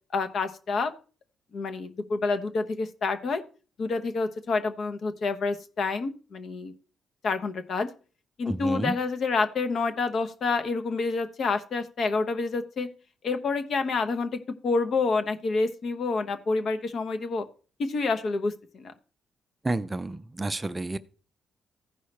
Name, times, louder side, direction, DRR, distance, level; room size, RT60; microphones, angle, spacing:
voice 1, 0.1-0.9 1.5-3.4 3.8-6.7 7.2-7.9 8.4-12.9 13.2-17.5 17.8-18.9, left 4 dB, 60° left, 0.9 m, -28 dB
voice 2, 8.5-9.0 19.6-21.0, right 2 dB, 20° right, 0.4 m, -30 dB
15.0 x 5.5 x 3.3 m
cardioid pair, 85°, 0 cm